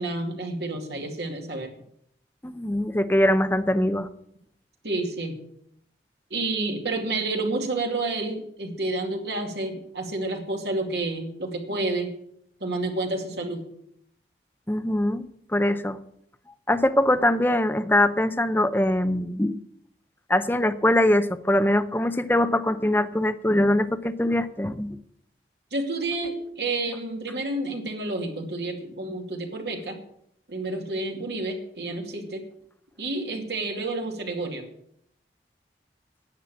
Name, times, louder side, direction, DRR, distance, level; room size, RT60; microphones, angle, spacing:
voice 1, 0.0-1.7 4.8-5.3 6.3-12.1 12.6-13.6 25.7-30.0 30.5-32.4 33.0-34.7, right 2 dB, 70° right, 2 dB, 2.5 m, -29 dB
voice 2, 2.4-4.1 14.7-16.0 16.7-19.6 20.3-25.0, left 1 dB, 10° left, 9 dB, 0.6 m, -22 dB
10.5 x 9.2 x 7.1 m, 0.71 s
head